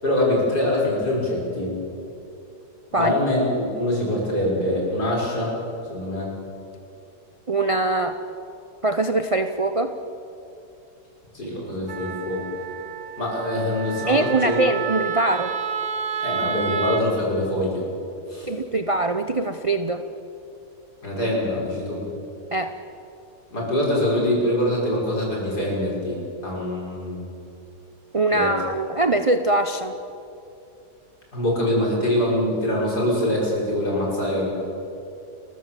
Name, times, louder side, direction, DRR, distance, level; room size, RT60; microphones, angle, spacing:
voice 1, 0.0-1.8 2.9-5.6 5.9-6.4 11.3-12.4 13.2-14.6 16.2-17.8 18.3-18.5 21.0-22.1 23.5-27.2 28.3-28.5 31.3-34.5, left 1 dB, 70° left, -4 dB, 6.4 m, -24 dB
voice 2, 7.5-8.2 8.8-9.9 14.1-15.5 18.5-20.0 22.5-22.7 28.1-30.0, right 2 dB, 40° right, 8 dB, 0.5 m, -22 dB
Wind instrument woodwind instrument, 11.9-17.1, right 7 dB, 80° right, 1.7 m, -30 dB
30.0 x 14.5 x 7.5 m, 2.7 s
omnidirectional pair, 1.8 m